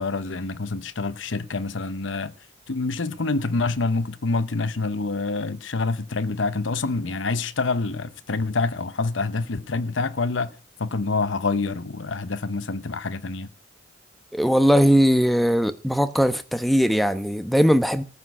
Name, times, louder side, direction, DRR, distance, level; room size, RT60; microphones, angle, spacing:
voice 1, 0.0-2.3 2.7-13.5, left 3 dB, 80° left, 0.8 m, -27 dB
voice 2, 14.3-18.0, equal, ahead, 0.9 m, -19 dB
14.5 x 6.3 x 9.3 m
head